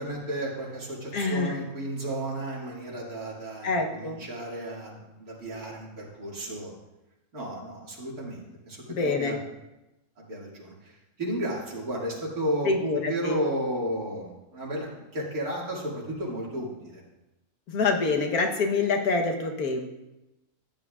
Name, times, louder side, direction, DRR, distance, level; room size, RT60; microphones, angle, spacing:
voice 1, 0.0-6.7 7.3-9.4 10.2-17.0, right 1 dB, 80° right, -4 dB, 2.8 m, -33 dB
voice 2, 1.1-1.6 3.6-4.2 8.9-9.4 12.6-13.4 17.7-19.9, left 4 dB, 90° left, 3 dB, 1.6 m, -26 dB
14.0 x 9.5 x 2.4 m, 0.96 s
omnidirectional pair, 1.5 m